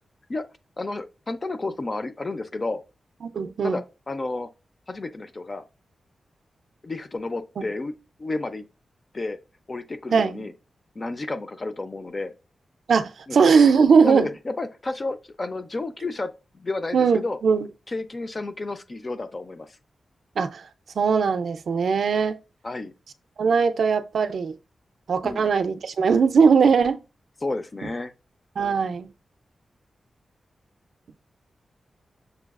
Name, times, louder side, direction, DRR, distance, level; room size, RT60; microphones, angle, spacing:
voice 1, 0.8-2.8 3.6-4.5 4.9-5.6 6.8-7.9 8.2-8.7 9.1-9.4 9.7-10.5 11.0-12.3 13.3-13.4 14.0-17.4 17.9-19.7 22.6-22.9 25.2-25.5 27.4-28.1 28.8-28.9, left 2 dB, 30° left, 0.4 m, -31 dB
voice 2, 3.2-3.8 7.6-7.7 10.1-10.4 12.9-14.3 16.9-17.7 20.4-20.6 21.0-22.4 23.4-24.6 25.1-27.0 28.6-29.1, right 5 dB, 65° right, 0.4 m, -20 dB
6.6 x 2.3 x 2.3 m
wide cardioid pair, 170°, 0 cm